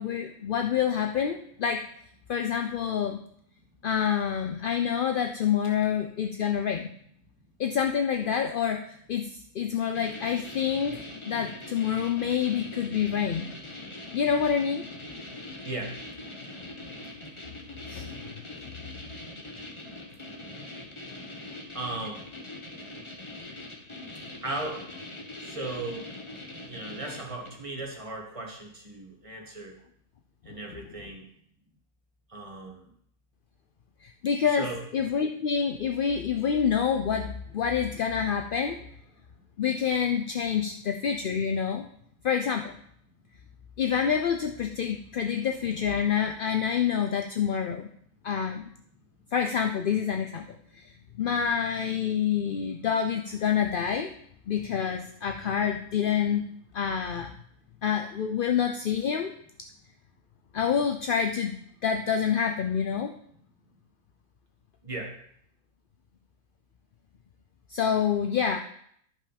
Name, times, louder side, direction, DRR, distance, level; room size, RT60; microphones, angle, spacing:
voice 1, 0.0-1.8 2.3-3.2 3.8-6.9 7.6-13.5 14.1-14.8 17.9-18.1 30.5-30.6 34.0-38.8 39.6-41.9 42.2-42.7 43.8-47.9 48.2-48.6 49.3-50.9 51.2-54.1 54.5-56.4 56.7-57.3 57.8-59.3 60.5-61.6 61.8-63.1 67.7-68.6, left 7 dB, 60° left, 6 dB, 0.6 m, -27 dB
sound 1, 9.9-27.7, left 2 dB, 20° left, 1.2 m, -42 dB
voice 2, 15.6-16.0 21.7-22.2 24.4-24.8 25.4-26.0 26.7-29.8 30.4-31.2 32.3-32.9 34.6-34.8 64.8-65.1, right 2 dB, 25° right, 0 dB, 1.7 m, -36 dB
10.5 x 5.5 x 5.1 m, 0.66 s
omnidirectional pair, 1.5 m